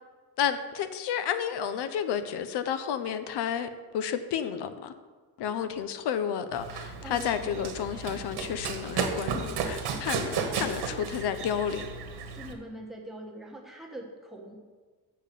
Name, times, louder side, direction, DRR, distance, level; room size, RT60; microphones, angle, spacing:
voice 1, 0.4-3.7 3.9-4.9 5.4-11.9, left 8 dB, 90° left, 10 dB, 0.7 m, -31 dB
Run, 6.5-12.5, right 5 dB, 80° right, 1.3 m, -34 dB
voice 2, 7.0-7.7 12.3-14.6, right 1 dB, ahead, 1 dB, 1.2 m, -43 dB
7.5 x 5.6 x 7.4 m, 1.4 s
cardioid pair, 165°, 39 cm